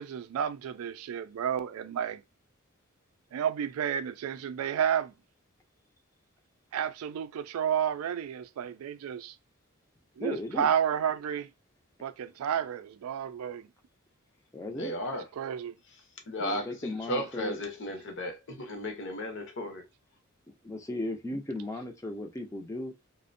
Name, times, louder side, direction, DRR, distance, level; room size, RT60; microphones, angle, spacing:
voice 1, 0.0-2.2 3.3-5.1 6.7-9.4 10.2-11.5 12.0-13.7 15.1-15.8, right 8 dB, 85° right, 0.3 m, -31 dB
voice 2, 10.2-10.7 14.5-15.0 16.4-17.6 20.5-22.9, left 1 dB, 15° left, 0.4 m, -36 dB
voice 3, 14.7-15.2 16.3-19.8, equal, 60° left, 0.7 m, -35 dB
2.5 x 2.1 x 2.5 m
head